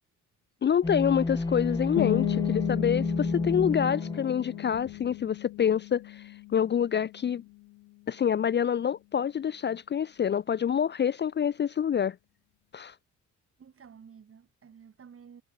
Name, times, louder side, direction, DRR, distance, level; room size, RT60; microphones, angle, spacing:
voice 1, 0.6-7.4 8.1-12.2 12.7-12.9, left 8 dB, 35° left, 0.5 m, -27 dB
sound 1, 0.8-5.1, left 2 dB, 10° left, 0.9 m, -31 dB
sound 2, 2.0-7.6, left 21 dB, 90° left, 0.5 m, -35 dB
voice 2, 13.6-15.4, right 7 dB, 45° right, 5.4 m, -52 dB
cardioid pair, 90°, 30 cm